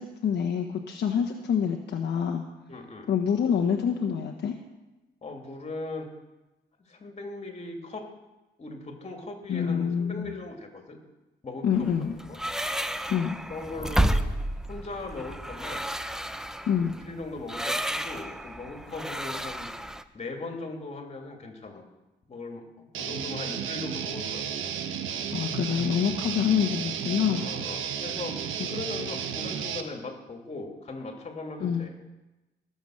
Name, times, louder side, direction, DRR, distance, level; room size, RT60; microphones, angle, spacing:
voice 1, 0.0-2.4 3.1-4.6 9.5-10.3 11.6-12.2 13.1-13.3 16.7-16.9 25.3-27.4 31.6-31.9, left 7 dB, 60° left, 2 dB, 1.2 m, -26 dB
voice 2, 2.7-3.1 5.2-6.1 6.9-8.1 8.6-11.0 11.4-11.9 12.2-12.4 13.5-14.3 14.7-15.9 16.8-19.7 20.1-21.8 22.3-24.7 27.3-28.4 28.7-31.9, left 3 dB, 35° left, 3 dB, 2.8 m, -39 dB
sound 1, 11.7-20.0, right 1 dB, 5° right, 0.7 m, -31 dB
Guitar, 22.9-29.8, right 8 dB, 80° right, 1.2 m, -33 dB
19.0 x 7.2 x 6.5 m, 1.1 s
cardioid pair, 90°, 20 cm